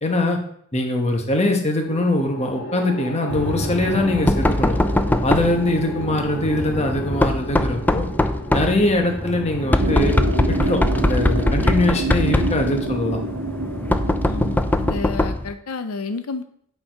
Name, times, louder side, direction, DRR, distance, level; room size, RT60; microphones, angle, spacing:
voice 1, 0.0-0.4 0.7-4.8 5.2-8.0 8.5-10.1 10.5-13.2, left 1 dB, 30° left, 3 dB, 1.1 m, -22 dB
sound 1, 1.8-14.2, equal, 65° left, 2.4 m, -35 dB
Knock, 3.3-15.5, left 1 dB, 10° left, 0.3 m, -22 dB
sound 2, 9.8-15.1, right 2 dB, 60° right, 1.1 m, -27 dB
voice 2, 14.3-16.4, left 4 dB, 80° left, 9 dB, 0.5 m, -30 dB
8.4 x 4.6 x 4.6 m, 0.66 s
head